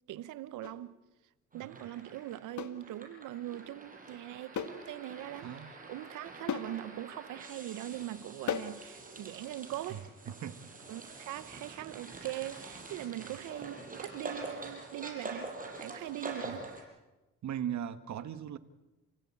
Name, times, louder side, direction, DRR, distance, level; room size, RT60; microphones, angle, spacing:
voice 1, 0.1-1.0 1.5-10.0 10.9-15.5 15.8-16.7, right 14 dB, 90° right, 1.0 m, -41 dB
sound 1, 0.6-0.8 2.6-2.8 4.6-4.9 5.2-5.3 6.5-6.8 8.5-8.8, left 8 dB, 70° left, 1.6 m, -36 dB
sound 2, 1.5-16.8, right 3 dB, 25° right, 6.7 m, -46 dB
voice 2, 1.5-1.8 5.4-5.7 9.9-10.0 10.3-10.7 16.4-16.6 17.4-18.6, right 10 dB, 65° right, 1.5 m, -39 dB
29.5 x 17.0 x 8.8 m
cardioid pair, 90°, 30 cm